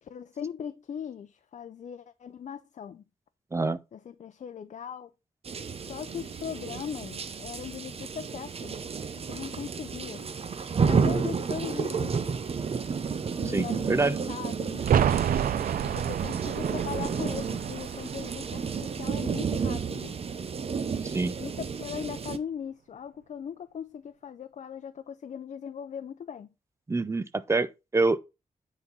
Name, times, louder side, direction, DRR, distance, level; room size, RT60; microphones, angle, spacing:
voice 1, 0.0-3.0 3.9-5.1 5.7-8.8 9.2-10.3 10.9-12.4 13.4-15.2 15.8-20.2 21.4-26.5, left 8 dB, 60° left, 0.5 m, -39 dB
sound 1, 5.4-22.4, right 5 dB, 45° right, 0.8 m, -31 dB
voice 2, 13.5-14.1 21.0-21.3 26.9-28.2, right 3 dB, 20° right, 0.6 m, -26 dB
sound 2, 14.8-20.4 20.6-20.7, right 9 dB, 90° right, 0.5 m, -30 dB
9.6 x 4.1 x 5.4 m
wide cardioid pair, 145°, 14 cm